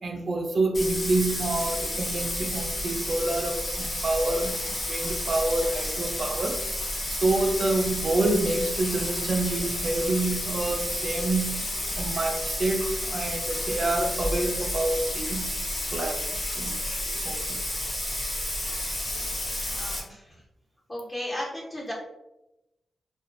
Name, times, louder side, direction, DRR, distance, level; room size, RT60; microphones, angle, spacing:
voice 1, 0.0-6.6 7.1-11.6 12.0-15.5 15.9-16.8 17.2-17.6, right 2 dB, 55° right, 3 dB, 0.3 m, -27 dB
Bathtub (filling or washing), 0.7-20.0, left 1 dB, 55° left, 0.9 m, -31 dB
voice 2, 19.7-20.4 20.9-21.9, left 1 dB, 30° left, -4 dB, 1.0 m, -35 dB
2.2 x 2.2 x 2.5 m, 0.92 s
cardioid pair, 60°, 0 cm